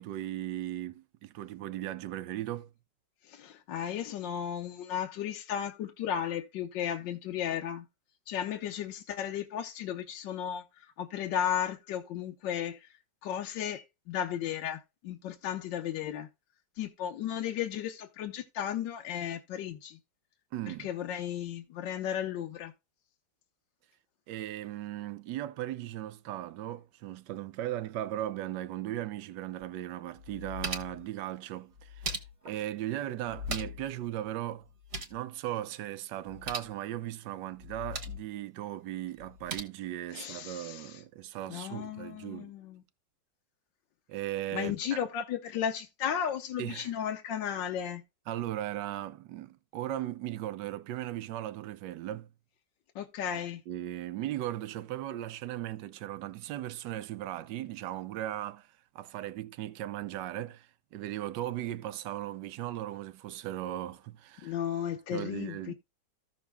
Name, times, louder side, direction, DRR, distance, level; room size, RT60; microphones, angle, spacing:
voice 1, 0.0-2.7 20.5-20.9 24.3-32.1 32.4-34.7 35.1-42.5 44.1-45.0 46.6-46.9 48.3-52.3 53.7-58.7 58.9-64.5 65.1-65.7, right 13 dB, 75° right, 1.3 m, -37 dB
voice 2, 3.3-7.8 8.3-12.8 13.2-16.3 16.8-20.0 20.7-22.7 40.1-41.0 41.5-42.8 44.5-48.0 52.9-53.6 64.4-65.7, left 9 dB, 80° left, 1.5 m, -34 dB
sound 1, 29.6-29.7 30.2-31.1 31.8-32.6 33.3-33.9 34.2-34.3 34.6-35.2 36.3-36.7 37.6-38.2 39.2-39.6, right 1 dB, 40° right, 1.4 m, -39 dB
15.0 x 6.3 x 2.2 m
omnidirectional pair, 2.0 m